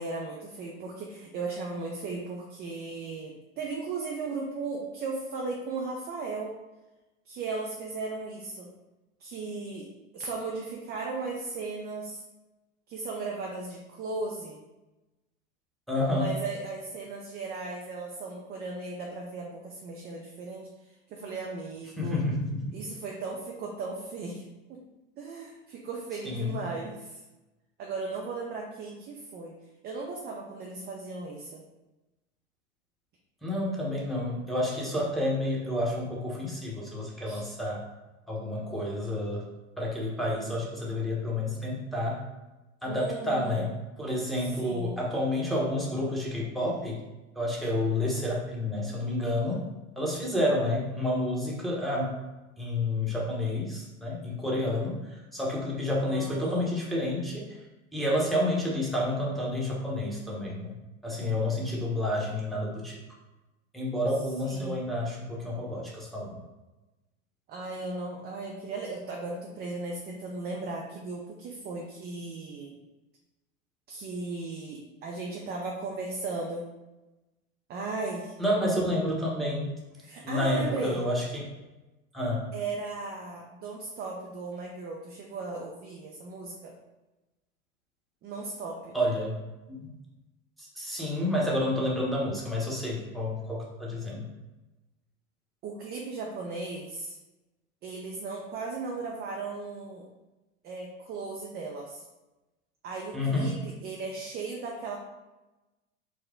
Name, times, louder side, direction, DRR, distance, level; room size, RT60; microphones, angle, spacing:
voice 1, 0.0-6.5 7.3-8.7 9.2-9.9 10.1-12.2 12.9-14.6 16.1-20.7 21.1-22.2 22.7-24.4 24.7-24.8 25.2-27.2 27.8-29.5 29.8-31.6 37.2-37.5 42.9-43.7 44.4-45.0 56.0-56.7 64.4-64.9 67.5-72.8 73.9-76.7 77.7-78.4 80.0-81.0 82.5-86.7 88.2-88.9 95.6-97.2 97.8-100.0 100.6-102.0 102.8-105.0, right 3 dB, 25° right, 0 dB, 0.5 m, -36 dB
voice 2, 15.9-16.3 22.0-22.8 26.2-26.6 33.4-37.8 38.3-39.4 39.8-42.2 42.8-43.7 44.0-47.0 47.3-49.7 50.0-52.1 52.6-57.6 57.9-60.7 61.0-63.0 63.7-66.4 78.4-79.8 80.2-81.5 82.1-82.5 88.9-89.4 89.7-89.9 90.6-94.2 103.1-103.6, left 1 dB, ahead, -4 dB, 1.0 m, -29 dB
4.7 x 2.1 x 3.6 m, 1.1 s
figure-of-eight pair, 85°, 41 cm